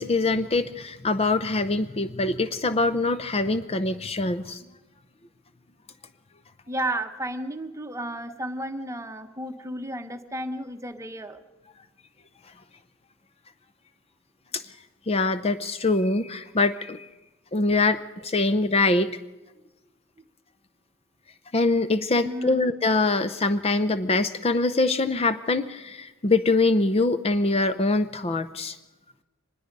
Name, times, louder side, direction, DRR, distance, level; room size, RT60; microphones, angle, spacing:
voice 1, 0.0-4.6 14.5-14.6 15.1-17.1 17.5-19.2 21.5-28.8, left 3 dB, 30° left, 12 dB, 0.6 m, -24 dB
voice 2, 6.7-11.4 22.2-22.7, right 1 dB, 15° right, 8 dB, 1.0 m, -33 dB
24.5 x 20.5 x 5.3 m, 1.1 s
head